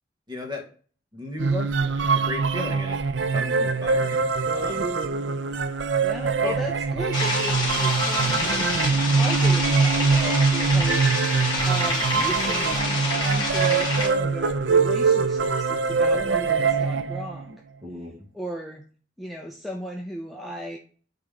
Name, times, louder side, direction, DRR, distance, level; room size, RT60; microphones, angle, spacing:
voice 1, 0.3-0.6 1.1-3.0 3.3-4.9 6.4-6.6 17.8-18.2, left 2 dB, 25° right, 1 dB, 1.8 m, -35 dB
sound 1, 1.4-17.4, right 4 dB, 65° right, 0.5 m, -23 dB
voice 2, 6.0-8.9 9.1-17.6 18.3-18.9 19.2-20.8, equal, ahead, 1 dB, 0.6 m, -36 dB
sound 2, 7.1-14.1, left 2 dB, 20° left, 2.2 m, -27 dB
8.6 x 3.5 x 5.3 m, 0.42 s
head